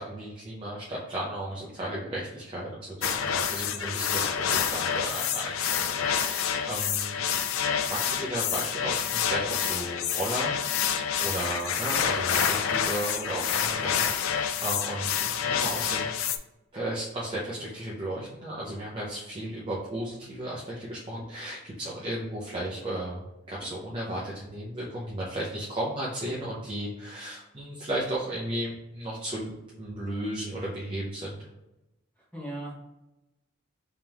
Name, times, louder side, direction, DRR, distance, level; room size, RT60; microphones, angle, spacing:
voice 1, 0.0-7.2 7.9-16.2 16.7-29.5 29.8-31.5, right 1 dB, 25° right, -6 dB, 0.7 m, -34 dB
sound 1, 3.0-16.4, left 8 dB, 70° left, 0.4 m, -28 dB
voice 2, 32.2-32.7, right 1 dB, 5° left, -6 dB, 1.1 m, -40 dB
3.6 x 3.0 x 3.5 m, 0.96 s
head